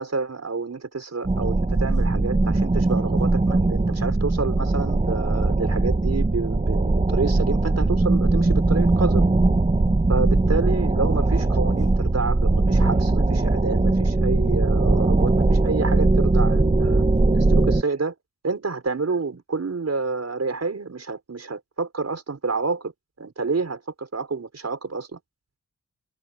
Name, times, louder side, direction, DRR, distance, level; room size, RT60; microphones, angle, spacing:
voice 1, 0.0-9.2 10.1-17.0 17.3-18.1 18.4-22.9 23.2-25.2, right 4 dB, 60° right, 5.5 m, -29 dB
sound 1, 1.2-17.8, right 2 dB, 25° right, 1.2 m, -20 dB
wide cardioid pair, 85°, 30 cm